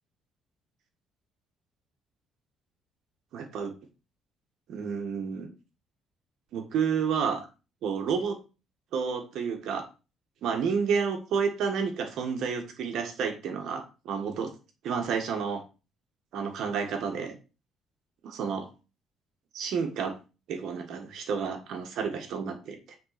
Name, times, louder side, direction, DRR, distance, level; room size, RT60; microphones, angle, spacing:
voice 1, 3.3-3.7 4.7-5.5 6.5-7.5 7.8-8.4 8.9-9.9 10.4-14.5 14.8-15.6 16.3-17.3 18.2-18.7 19.5-20.2 20.5-23.0, right 6 dB, 70° right, 6 dB, 1.7 m, -30 dB
7.7 x 3.9 x 5.9 m, 0.31 s
cardioid pair, 100°, 0 cm